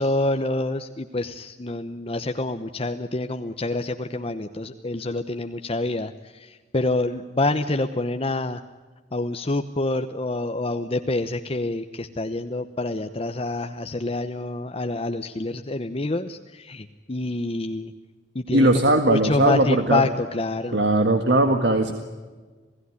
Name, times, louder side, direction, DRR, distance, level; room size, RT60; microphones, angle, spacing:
voice 1, 0.0-8.6 9.1-17.9 18.3-18.7 19.1-20.8, left 2 dB, 35° left, 7 dB, 0.9 m, -27 dB
voice 2, 18.5-20.0 20.7-21.9, right 1 dB, 80° right, 6 dB, 1.9 m, -19 dB
28.0 x 17.5 x 9.7 m, 1.4 s
head